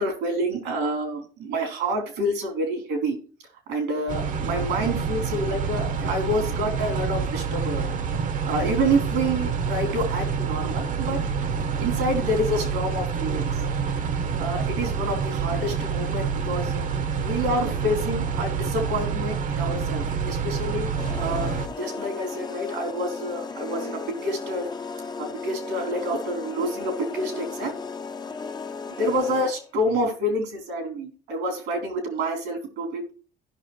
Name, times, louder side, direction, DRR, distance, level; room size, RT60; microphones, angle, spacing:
voice 1, 0.0-3.2 3.7-7.9 8.4-11.2 11.8-13.5 14.4-16.8 17.2-20.9 21.2-24.7 25.2-27.8 29.0-33.1, right 1 dB, 90° right, 3 dB, 3.7 m, -28 dB
sound 1, 4.1-21.7, right 6 dB, 50° right, 0.9 m, -27 dB
sound 2, 21.0-29.7, left 4 dB, 25° left, 0.7 m, -35 dB
16.0 x 6.0 x 3.2 m, 0.37 s
cardioid pair, 110°, 17 cm